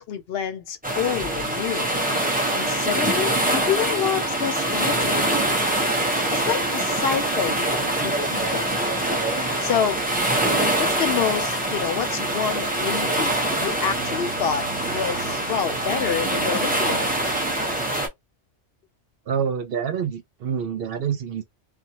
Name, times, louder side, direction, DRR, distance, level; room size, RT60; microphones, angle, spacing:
voice 1, 0.0-1.9 2.5-5.4 6.3-8.7 9.6-10.0 10.8-17.1, left 8 dB, 65° left, 0.7 m, -28 dB
sound 1, 0.8-18.1, right 1 dB, 10° right, 0.7 m, -24 dB
voice 2, 19.3-21.4, right 7 dB, 65° right, 0.7 m, -27 dB
2.5 x 2.2 x 2.8 m
omnidirectional pair, 1.2 m